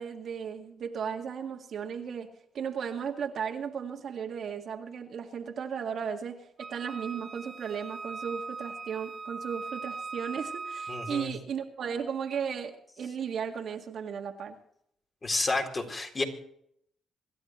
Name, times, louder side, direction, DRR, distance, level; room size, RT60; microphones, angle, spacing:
voice 1, 0.0-2.3 2.5-14.6, right 7 dB, 60° right, 2.1 m, -35 dB
Wind instrument woodwind instrument, 6.6-11.3, right 4 dB, 40° right, 2.4 m, -40 dB
voice 2, 10.9-11.3 15.2-16.2, left 2 dB, 30° left, 4.1 m, -30 dB
26.5 x 12.5 x 3.1 m
cardioid pair, 90°, 0 cm